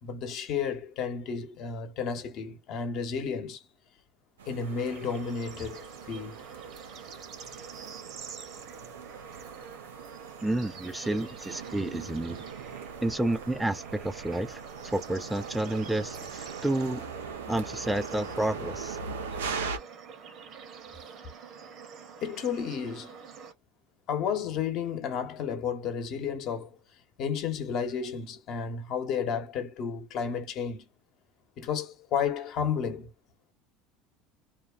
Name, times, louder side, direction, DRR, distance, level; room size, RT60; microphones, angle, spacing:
voice 1, 0.0-3.6 4.5-6.5 11.0-11.1 22.2-23.2 24.1-26.8 27.2-30.8 31.6-33.1, left 6 dB, 55° left, 1.0 m, -32 dB
sound 1, 4.4-19.8, right 5 dB, 90° right, 0.6 m, -41 dB
Bird / Insect / Frog, 4.6-23.5, right 6 dB, 50° right, 1.2 m, -46 dB
voice 2, 10.4-12.4 13.0-17.0 17.5-19.0, right 1 dB, 5° right, 0.4 m, -30 dB
2.7 x 2.3 x 2.4 m
hypercardioid pair, 80°, 0 cm